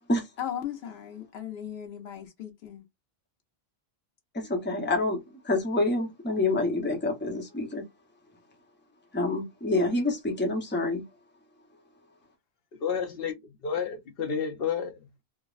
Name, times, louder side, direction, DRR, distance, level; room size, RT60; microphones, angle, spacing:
voice 1, 0.4-2.8, left 10 dB, 85° left, 1.1 m, -37 dB
voice 2, 4.3-7.8 9.1-11.0, left 2 dB, 10° left, 0.7 m, -27 dB
voice 3, 12.8-13.4 13.6-15.1, left 7 dB, 65° left, 0.8 m, -30 dB
3.4 x 2.1 x 2.4 m
omnidirectional pair, 1.1 m